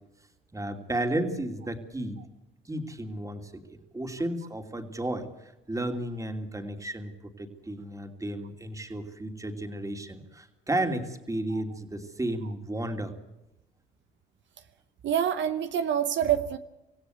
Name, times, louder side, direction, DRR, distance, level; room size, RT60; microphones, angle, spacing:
voice 1, 0.5-2.2 2.6-13.1, right 1 dB, 15° right, 5 dB, 2.9 m, -33 dB
voice 2, 15.0-16.6, right 9 dB, 70° right, 10 dB, 1.0 m, -26 dB
26.0 x 16.5 x 8.1 m, 0.99 s
cardioid pair, 90°, 20 cm